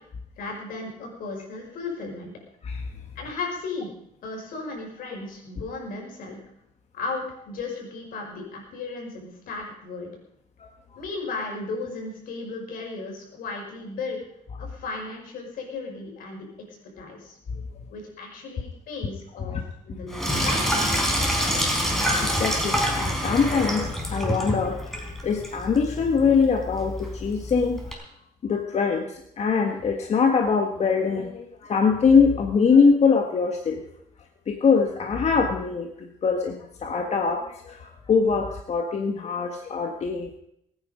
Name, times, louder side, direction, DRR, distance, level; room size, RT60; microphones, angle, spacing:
voice 1, 0.4-2.3 3.2-3.9 4.2-6.4 6.9-10.1 11.0-14.2 14.6-16.5 17.0-17.4 17.9-20.7, left 3 dB, 85° left, 1 dB, 5.6 m, -35 dB
Sink (filling or washing), 20.1-27.9, equal, ahead, 4.4 m, -27 dB
voice 2, 21.5-28.0 28.4-33.8 34.5-40.3, left 5 dB, 50° left, 3 dB, 1.6 m, -23 dB
21.5 x 9.7 x 5.1 m, 0.75 s
cardioid pair, 100°, 14 cm